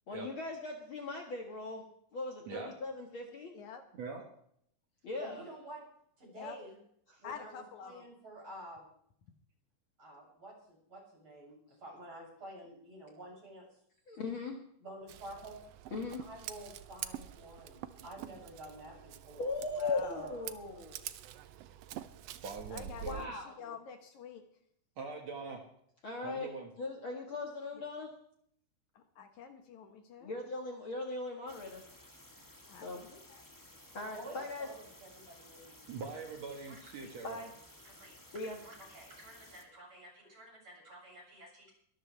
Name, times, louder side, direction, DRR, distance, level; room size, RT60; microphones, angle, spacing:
voice 1, 0.1-1.8 2.1-3.5 5.0-5.4 7.1-7.2 14.1-14.6 15.9-16.2 19.4-21.1 23.1-23.8 26.0-26.5 26.8-28.1 30.2-31.8 32.8-33.0 33.9-34.7 37.2-37.5 38.3-38.6, left 3 dB, 45° left, 1 dB, 2.1 m, -39 dB
voice 2, 3.9-4.2 22.3-23.3 25.0-25.6 26.2-26.7 35.9-37.4, right 4 dB, 60° right, 2 dB, 2.6 m, -43 dB
voice 3, 5.2-5.8 6.2-6.8 7.2-8.9 10.0-13.7 14.8-15.6 16.2-19.5 19.8-20.5 34.1-35.8 36.6-37.1 37.8-38.2 38.4-41.7, right 1 dB, 40° right, -3 dB, 8.2 m, -50 dB
voice 4, 7.2-8.0 19.7-20.2 22.7-24.4 27.8-27.9 29.0-30.3 32.7-33.4, left 7 dB, 70° left, 6 dB, 2.5 m, -48 dB
Scissors, 15.1-23.3, right 11 dB, 85° right, 1.4 m, -46 dB
sound 1, 31.5-39.6, left 1 dB, 25° left, 0.4 m, -57 dB
23.0 x 13.5 x 3.4 m, 0.67 s
omnidirectional pair, 3.7 m